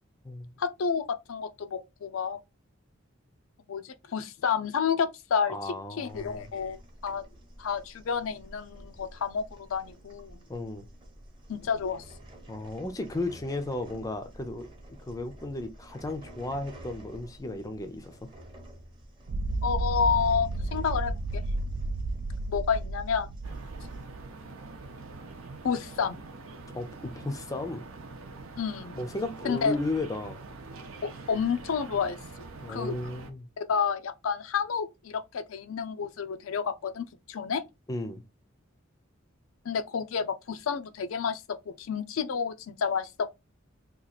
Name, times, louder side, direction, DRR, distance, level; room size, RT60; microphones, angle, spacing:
voice 1, 0.6-2.4 3.7-6.8 7.0-7.2 7.6-10.4 11.5-12.1 19.6-21.4 22.5-23.3 25.6-26.2 28.6-29.0 29.4-29.8 31.0-32.2 32.7-33.0 33.6-37.6 39.7-43.3, left 6 dB, 75° left, 0.4 m, -30 dB
voice 2, 5.5-6.5 10.5-10.9 12.5-14.7 15.0-18.3 26.7-27.9 28.9-30.4 32.6-33.5 37.9-38.2, left 2 dB, 15° left, 0.4 m, -34 dB
sound 1, 6.1-24.1, right 1 dB, 25° right, 0.9 m, -50 dB
sound 2, 19.3-24.3, right 2 dB, 55° right, 0.4 m, -32 dB
sound 3, 23.4-33.3, right 3 dB, 80° right, 0.7 m, -44 dB
2.9 x 2.4 x 3.9 m
head